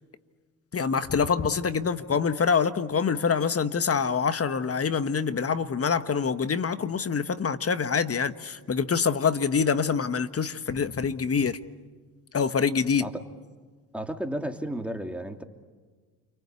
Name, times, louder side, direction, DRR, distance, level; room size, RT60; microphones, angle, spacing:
voice 1, 0.7-11.6 12.3-13.1, left 6 dB, 35° left, 12 dB, 1.5 m, -25 dB
voice 2, 13.9-15.4, right 1 dB, 5° right, 5 dB, 3.0 m, -33 dB
29.5 x 24.0 x 8.5 m, 1.4 s
supercardioid pair, 65°, 40 cm